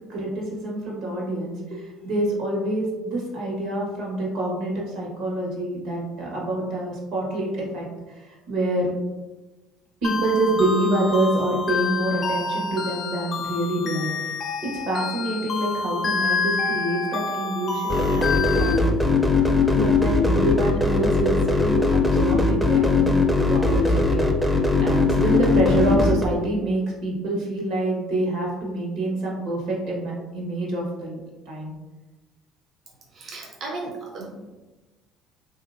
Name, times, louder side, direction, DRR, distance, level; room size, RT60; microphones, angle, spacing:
voice 1, 0.1-8.9 10.0-14.3 14.6-18.8 19.1-19.3 19.7-23.2 23.5-31.2 31.4-31.7, right 1 dB, 75° right, -2 dB, 1.3 m, -26 dB
sound 1, 10.0-18.8, left 4 dB, 40° left, 0.5 m, -28 dB
sound 2, 17.9-26.3, left 3 dB, 10° right, 0.5 m, -20 dB
voice 2, 33.1-34.5, right 3 dB, 50° right, -1 dB, 0.6 m, -35 dB
3.1 x 2.8 x 2.5 m, 1.2 s
supercardioid pair, 95°, 0 cm